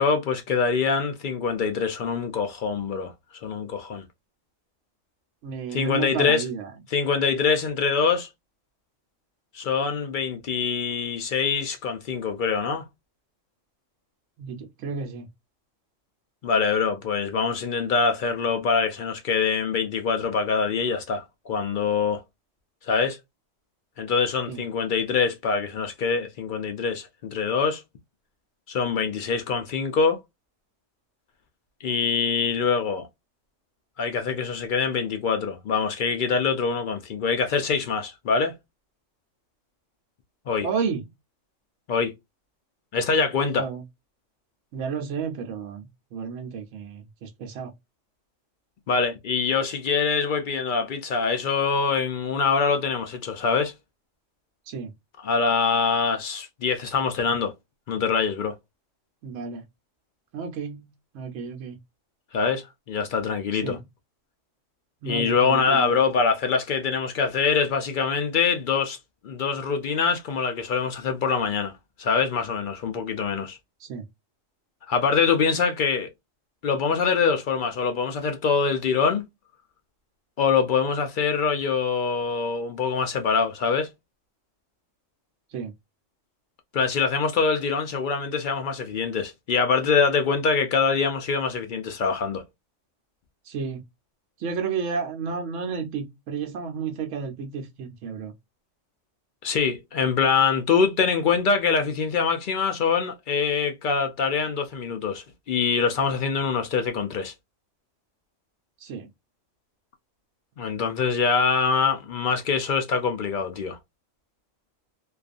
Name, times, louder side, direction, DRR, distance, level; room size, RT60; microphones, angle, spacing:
voice 1, 0.0-3.1 3.4-4.0 5.7-6.4 6.9-8.3 9.5-12.8 16.4-22.2 22.9-23.2 24.0-27.8 28.7-30.2 31.8-33.1 34.0-38.5 40.5-40.7 41.9-42.1 42.9-43.7 48.9-53.7 55.2-57.5 57.9-58.5 62.3-63.8 65.0-69.0 69.2-71.7 72.0-73.6 74.9-76.1 76.6-79.2 80.4-83.9 86.7-92.4 99.4-107.3 110.6-113.8, left 5 dB, 65° left, 0.5 m, -24 dB
voice 2, 5.4-6.7 14.4-15.3 24.5-24.6 40.6-41.0 43.6-43.8 44.7-47.7 54.7-54.9 59.2-59.6 60.3-61.8 63.5-63.8 65.0-66.0 73.8-74.0 85.5-85.7 93.4-93.8 94.4-98.3 108.8-109.1, right 6 dB, 75° right, 0.9 m, -32 dB
2.4 x 2.3 x 2.4 m
omnidirectional pair, 1.3 m